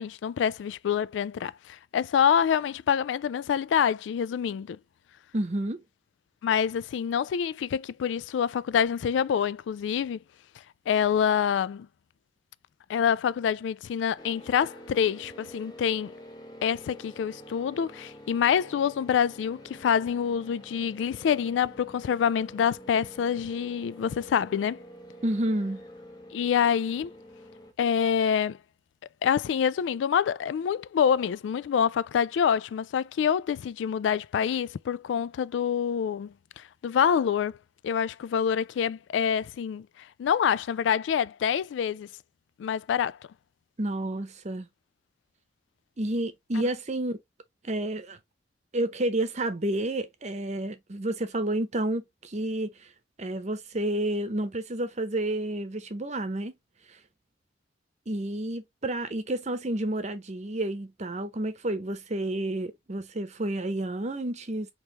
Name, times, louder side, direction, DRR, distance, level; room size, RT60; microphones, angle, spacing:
voice 1, 0.0-4.8 6.4-10.2 10.9-11.9 12.9-16.1 16.6-24.8 26.3-27.1 27.8-28.6 29.2-37.6 37.8-42.1 42.6-43.2 46.6-46.7, left 8 dB, 85° left, 0.3 m, -26 dB
voice 2, 5.3-5.8 25.2-25.8 43.8-44.7 46.0-47.2 47.6-48.2 48.7-52.7 53.2-56.5 58.1-64.7, right 1 dB, 40° right, 0.8 m, -30 dB
sound 1, 14.2-27.7, equal, 25° left, 1.0 m, -47 dB
4.5 x 3.0 x 3.1 m
head